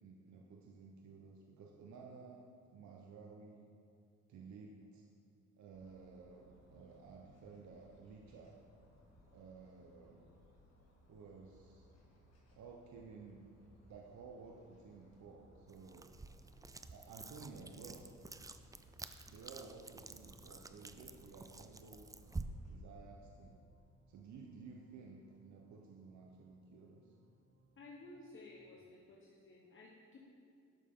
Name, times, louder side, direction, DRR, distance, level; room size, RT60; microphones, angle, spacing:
voice 1, 0.0-2.4 2.7-3.7 4.3-5.0 5.6-8.6 9.3-10.3 11.1-11.9 12.6-13.4 13.9-16.1 16.9-18.0 19.3-22.1 22.7-23.6 24.1-27.1, right 4 dB, 70° right, 0 dB, 1.0 m, -54 dB
sound 1, 5.7-22.8, equal, 60° left, 1.9 m, -66 dB
sound 2, 15.7-22.4, right 3 dB, 10° right, 0.3 m, -50 dB
sound 3, 16.3-28.9, right 2 dB, 85° right, 2.0 m, -72 dB
voice 2, 27.8-30.2, left 2 dB, 40° left, -3 dB, 1.2 m, -55 dB
11.5 x 6.6 x 3.8 m, 2.6 s
cardioid pair, 90°, 30 cm